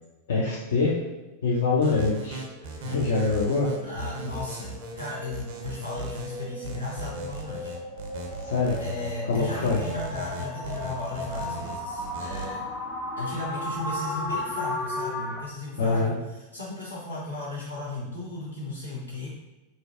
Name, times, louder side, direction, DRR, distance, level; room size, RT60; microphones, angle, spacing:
voice 1, 0.3-0.9 1.4-2.4 2.8-3.7 8.4-8.8 9.3-9.8 15.8-16.2, left 3 dB, 60° left, -5 dB, 0.4 m, -24 dB
sound 1, 1.8-12.5, right 3 dB, 50° right, 0.4 m, -38 dB
sound 2, 2.4-15.4, left 2 dB, 5° left, 0.5 m, -36 dB
voice 2, 3.8-4.7 5.0-7.7 8.8-12.7 13.2-19.3, left 2 dB, 85° left, -7 dB, 0.9 m, -35 dB
2.6 x 2.1 x 2.4 m, 1.1 s
figure-of-eight pair, 90°, 0 cm